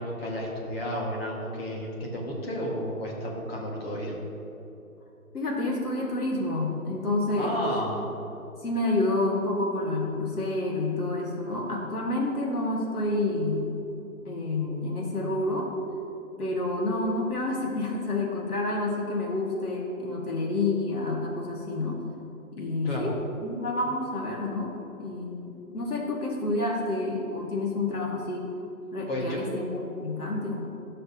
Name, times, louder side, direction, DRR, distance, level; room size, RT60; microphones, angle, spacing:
voice 1, 0.0-4.1 7.4-8.0 22.8-23.1 29.1-29.4, equal, 40° left, -3 dB, 1.9 m, -32 dB
voice 2, 5.3-7.5 8.6-13.7 14.2-15.7 16.4-22.0 22.5-24.7 25.0-28.5 28.9-30.7, left 2 dB, 80° left, -2 dB, 1.9 m, -29 dB
12.5 x 6.4 x 2.9 m, 2.9 s
hypercardioid pair, 160°, 44 cm